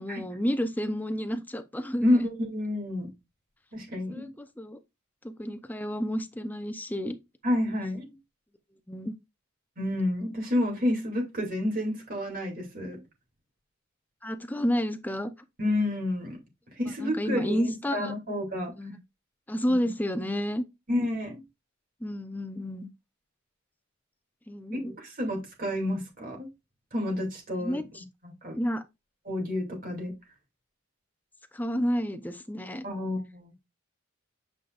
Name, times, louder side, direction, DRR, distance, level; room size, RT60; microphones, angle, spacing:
voice 1, 0.0-2.2 4.1-4.8 5.2-7.2 8.9-9.2 14.2-15.3 17.0-18.1 18.8-19.0 19.5-20.6 22.0-22.9 24.5-24.9 27.6-28.0 28.6-28.8 31.5-32.8, equal, 10° left, 0.6 m, -30 dB
voice 2, 2.0-3.1 3.7-4.3 7.4-8.1 9.8-13.0 15.6-16.4 16.8-18.7 20.9-21.4 24.8-26.5 26.9-27.8 28.2-28.6 29.3-30.1 32.8-33.6, left 1 dB, 40° right, 2.6 m, -29 dB
8.2 x 5.1 x 2.5 m
head